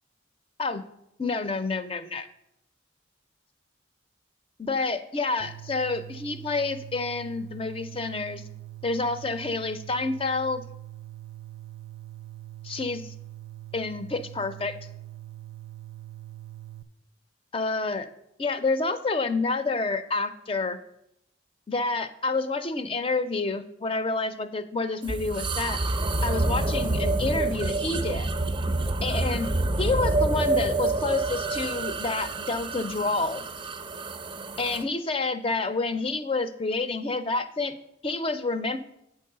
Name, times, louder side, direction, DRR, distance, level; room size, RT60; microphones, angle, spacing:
voice 1, 1.2-2.3 4.6-8.4 8.8-10.6 12.6-13.1 13.7-14.8 17.5-18.1 18.4-20.8 21.7-25.8 26.2-28.3 29.0-29.5 29.8-33.4 34.6-37.7 38.0-38.8, left 3 dB, 25° left, 11 dB, 0.5 m, -28 dB
sound 1, 5.4-16.8, right 15 dB, 85° right, 0.4 m, -43 dB
sound 2, 25.0-34.8, right 2 dB, 25° right, 0.5 m, -27 dB
8.0 x 4.6 x 6.6 m, 0.82 s
head